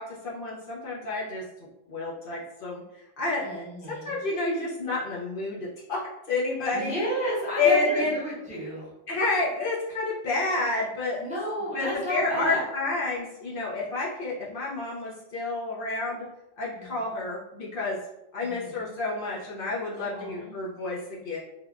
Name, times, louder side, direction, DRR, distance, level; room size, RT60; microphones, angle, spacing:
voice 1, 0.0-1.4 1.9-2.8 3.2-6.0 6.3-6.9 7.6-8.2 9.1-11.2 11.7-16.3 16.6-18.0 18.3-21.4, left 3 dB, 60° left, -6 dB, 0.8 m, -29 dB
voice 2, 3.4-4.2 6.7-8.9 11.2-12.6 16.7-17.2 18.4-19.0 20.0-20.6, equal, 10° right, -8 dB, 0.8 m, -32 dB
3.3 x 2.2 x 2.4 m, 0.90 s
omnidirectional pair, 1.1 m